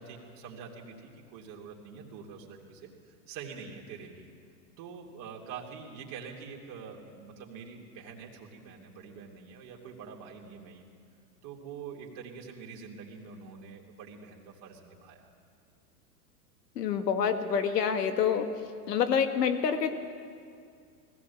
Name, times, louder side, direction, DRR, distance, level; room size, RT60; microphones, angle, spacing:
voice 1, 0.0-4.3 4.8-10.9 11.4-15.3, right 6 dB, 45° right, -1 dB, 3.4 m, -45 dB
voice 2, 16.8-18.5 18.9-19.9, left 7 dB, 75° left, 7 dB, 2.0 m, -27 dB
20.0 x 16.0 x 8.5 m, 2.3 s
hypercardioid pair, 110°, 49 cm